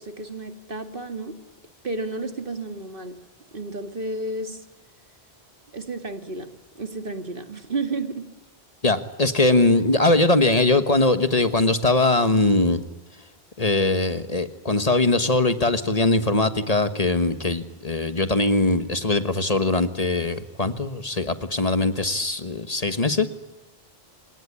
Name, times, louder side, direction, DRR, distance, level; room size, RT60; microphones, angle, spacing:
voice 1, 0.0-1.4 1.8-3.2 3.5-4.6 5.7-6.5 6.8-8.2, right 2 dB, 60° right, 8 dB, 2.3 m, -31 dB
voice 2, 8.8-12.8 13.6-23.3, left 2 dB, 40° left, 11 dB, 1.4 m, -21 dB
28.5 x 18.5 x 9.8 m, 1.1 s
omnidirectional pair, 1.0 m